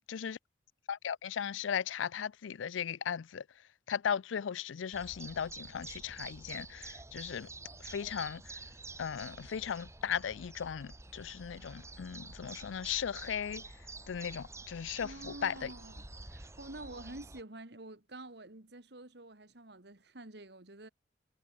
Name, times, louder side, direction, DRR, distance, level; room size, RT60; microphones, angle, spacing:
voice 1, 0.9-3.4 3.9-7.5 7.8-8.6 9.0-13.7 14.1-15.7, left 8 dB, 85° left, 0.4 m, -37 dB
sound 1, 4.9-17.4, right 3 dB, 15° right, 2.8 m, -49 dB
voice 2, 15.0-20.9, right 2 dB, 60° right, 2.2 m, -48 dB
head